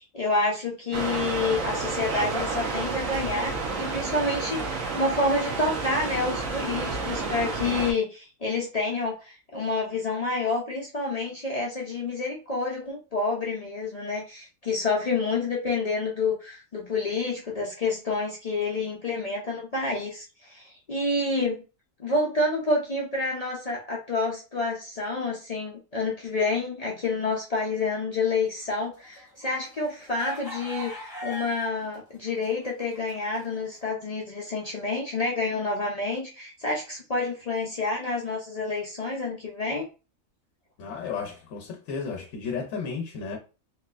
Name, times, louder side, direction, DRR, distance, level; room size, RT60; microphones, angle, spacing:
voice 1, 0.0-21.6 22.0-39.9, left 3 dB, 55° left, 0.4 m, -28 dB
sound 1, 0.9-7.9, right 3 dB, 75° right, 1.2 m, -30 dB
sound 2, 28.7-32.0 32.3-33.6, right 1 dB, 20° left, 0.8 m, -39 dB
voice 2, 40.8-43.4, left 5 dB, 70° left, 1.0 m, -33 dB
3.1 x 2.8 x 2.4 m
omnidirectional pair, 1.4 m